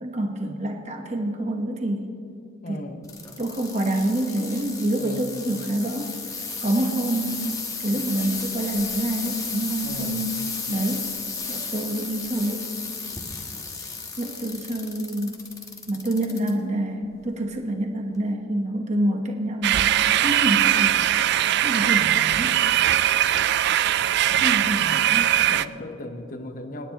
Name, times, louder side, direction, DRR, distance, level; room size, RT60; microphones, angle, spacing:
voice 1, 0.0-2.1 2.7-2.8 3.4-6.1 6.6-10.4 10.7-11.1 11.5-12.7 14.2-15.5 15.9-21.1 21.5-22.6 24.4-25.3, right 1 dB, 35° right, 3 dB, 1.1 m, -27 dB
voice 2, 2.6-3.1 4.9-5.5 9.8-10.3 25.5-26.9, left 1 dB, 45° left, 6 dB, 1.0 m, -37 dB
sound 1, 3.0-16.5 17.0-17.5 18.1-18.2, left 4 dB, 15° left, 1.2 m, -34 dB
sound 2, 19.6-25.6, right 12 dB, 55° right, 0.3 m, -20 dB
28.5 x 9.8 x 2.9 m, 2.6 s
head